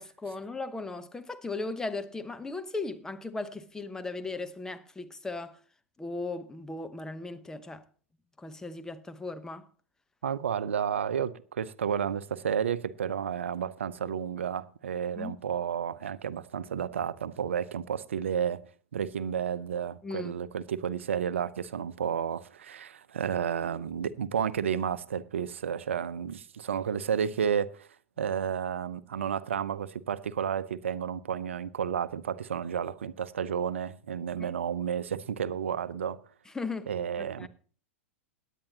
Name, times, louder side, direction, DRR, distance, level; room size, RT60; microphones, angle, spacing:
voice 1, 0.0-5.6 6.0-7.8 8.4-9.7 15.2-15.4 20.0-20.3 34.4-34.6 36.5-36.9 37.2-37.5, left 3 dB, 10° left, 0.9 m, -37 dB
voice 2, 10.2-18.6 18.9-27.9 28.2-36.2 36.9-37.5, right 8 dB, 65° right, 0.7 m, -31 dB
17.5 x 10.0 x 2.8 m
figure-of-eight pair, 95°, 7 cm